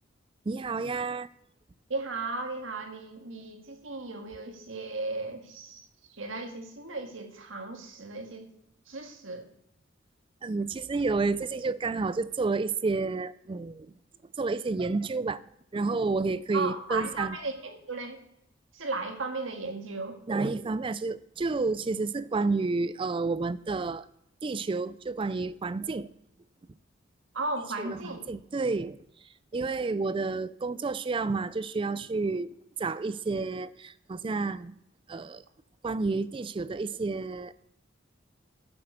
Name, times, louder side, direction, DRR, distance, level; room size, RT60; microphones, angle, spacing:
voice 1, 0.5-1.3 10.4-13.9 14.4-15.4 15.7-17.4 20.3-24.1 24.4-26.1 27.8-29.0 29.5-34.8 35.1-35.4 35.8-37.5, right 3 dB, 25° right, 0.3 m, -30 dB
voice 2, 1.9-8.5 8.9-9.5 16.5-18.2 18.7-20.2 27.3-28.2, right 3 dB, 70° right, 1.8 m, -35 dB
11.0 x 7.8 x 6.5 m
head